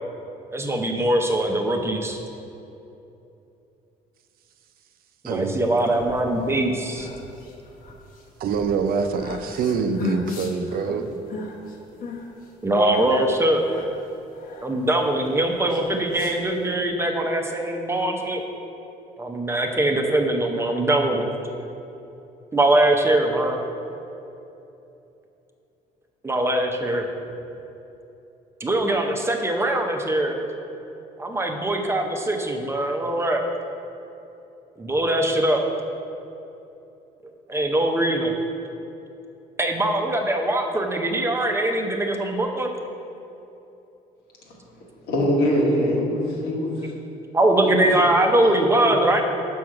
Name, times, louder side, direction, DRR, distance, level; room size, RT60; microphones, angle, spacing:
voice 1, 0.5-2.2 5.2-7.1 10.9-11.4 12.6-13.6 14.6-18.4 19.2-21.3 22.5-23.6 26.2-27.1 28.6-30.4 31.2-33.4 34.8-35.6 37.5-38.3 39.6-42.7 45.9-46.3 46.8-46.9 47.3-49.2, right 1 dB, 15° right, 3 dB, 0.7 m, -22 dB
voice 2, 5.2-5.6 8.4-11.1, right 5 dB, 60° right, 7 dB, 0.6 m, -25 dB
sound 1, 5.6-16.8, left 4 dB, 55° left, 1.1 m, -38 dB
voice 3, 45.0-46.9 47.6-47.9 48.4-48.9, equal, 80° left, -2 dB, 1.6 m, -24 dB
6.3 x 6.0 x 4.8 m, 2.9 s
cardioid pair, 110°, 17 cm